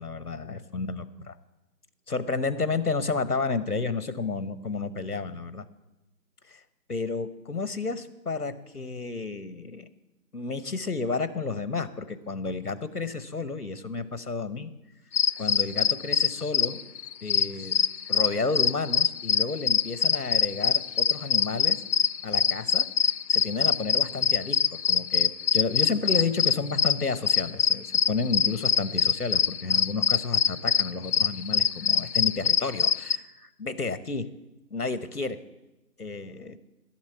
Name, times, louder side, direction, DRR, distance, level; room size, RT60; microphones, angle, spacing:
voice 1, 0.0-1.3 2.1-5.6 6.5-6.6 6.9-9.9 10.3-14.7 15.4-16.8 17.2-17.7 18.1-21.8 22.2-22.9 23.3-24.6 24.9-34.2 34.7-35.4 36.0-36.6, left 4 dB, 65° left, 13 dB, 1.0 m, -31 dB
sound 1, 15.1-33.2, left 6 dB, 85° left, 0.5 m, -24 dB
12.0 x 7.3 x 8.3 m, 1.0 s
figure-of-eight pair, 170°, 49 cm